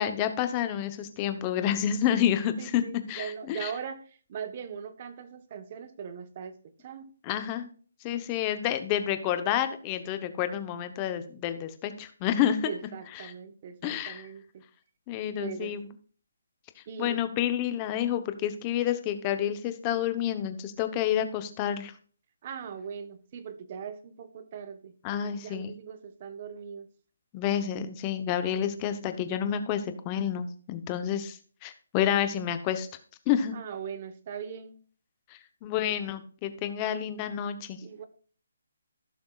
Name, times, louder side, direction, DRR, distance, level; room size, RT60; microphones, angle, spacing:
voice 1, 0.0-2.8 3.1-3.7 7.2-7.7 8.0-12.7 13.2-13.3 13.8-14.3 15.1-15.9 17.0-21.9 25.0-25.8 27.3-32.9 33.3-33.5 35.6-37.8, left 10 dB, 20° left, 10 dB, 0.8 m, -29 dB
voice 2, 2.6-7.1 12.7-14.6 15.4-15.7 16.9-17.2 22.4-24.9 25.3-26.9 33.5-34.8 37.8-38.1, right 7 dB, 35° right, 10 dB, 1.0 m, -40 dB
15.5 x 6.1 x 2.4 m, 0.43 s
hypercardioid pair, 165°, 0 cm